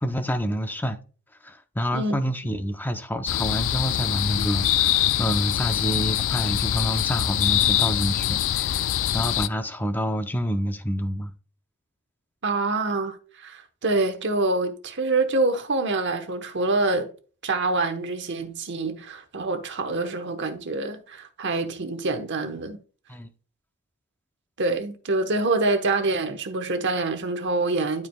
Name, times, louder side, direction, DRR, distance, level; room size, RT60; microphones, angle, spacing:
voice 1, 0.0-1.0 1.4-11.3 23.1-23.3, equal, 10° left, 0.5 m, -28 dB
sound 1, 3.3-9.5, left 12 dB, 60° left, 0.3 m, -24 dB
voice 2, 12.4-17.1 17.4-22.8 24.6-28.1, right 2 dB, 55° right, 1.0 m, -26 dB
12.0 x 4.7 x 2.2 m
head